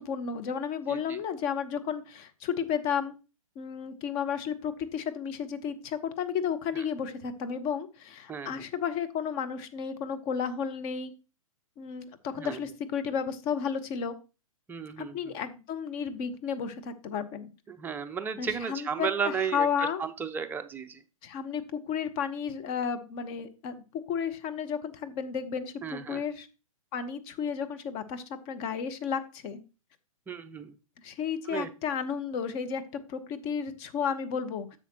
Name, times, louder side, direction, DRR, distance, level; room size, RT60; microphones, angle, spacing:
voice 1, 0.0-3.1 3.6-11.1 11.8-14.2 15.0-17.5 18.4-20.0 21.2-23.7 24.1-26.5 26.9-29.6 31.0-32.8 33.1-34.8, left 7 dB, 30° left, 9 dB, 0.9 m, -32 dB
voice 2, 8.3-8.7 12.4-12.6 14.7-15.3 17.7-21.0 25.8-26.2 30.3-30.7 31.5-31.7, right 6 dB, 10° right, 8 dB, 0.5 m, -34 dB
10.0 x 7.0 x 2.9 m, 0.31 s
figure-of-eight pair, 115°, 18 cm